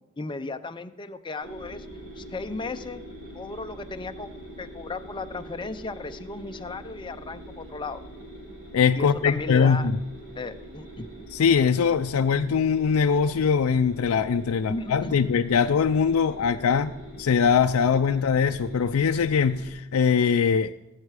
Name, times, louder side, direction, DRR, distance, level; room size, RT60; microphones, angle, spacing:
voice 1, 0.2-1.9 2.2-3.0 3.3-4.3 4.6-8.0 8.9-9.9 10.4-11.2 14.7-15.5, left 3 dB, 20° left, 8 dB, 0.6 m, -35 dB
sound 1, 1.4-19.7, right 1 dB, 40° right, 4.7 m, -43 dB
voice 2, 8.7-10.0 11.3-20.7, left 6 dB, 75° left, 7 dB, 0.4 m, -22 dB
18.5 x 7.5 x 4.9 m, 1.0 s
head